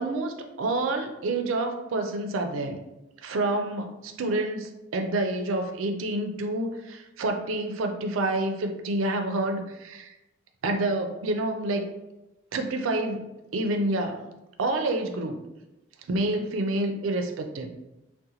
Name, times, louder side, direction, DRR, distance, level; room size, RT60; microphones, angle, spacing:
voice 1, 0.0-2.8 3.2-10.1 10.6-11.9 12.5-14.2 14.6-15.4 16.1-17.7, right 2 dB, 90° right, 5 dB, 0.4 m, -28 dB
2.8 x 2.1 x 3.7 m, 0.95 s
head